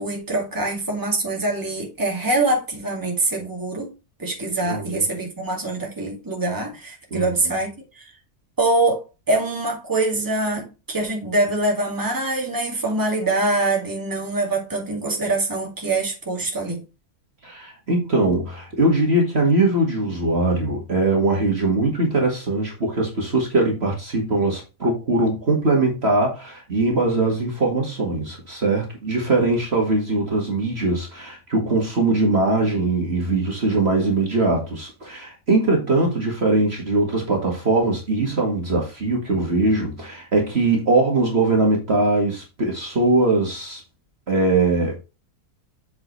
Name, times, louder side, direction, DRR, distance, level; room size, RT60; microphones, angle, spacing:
voice 1, 0.0-3.9 4.2-8.1 8.6-16.8, right 2 dB, 15° right, 2.2 m, -24 dB
voice 2, 4.6-5.0 7.1-7.2 17.4-43.8 44.3-45.0, right 2 dB, 40° right, 2.1 m, -21 dB
7.7 x 5.8 x 3.1 m
omnidirectional pair, 1.6 m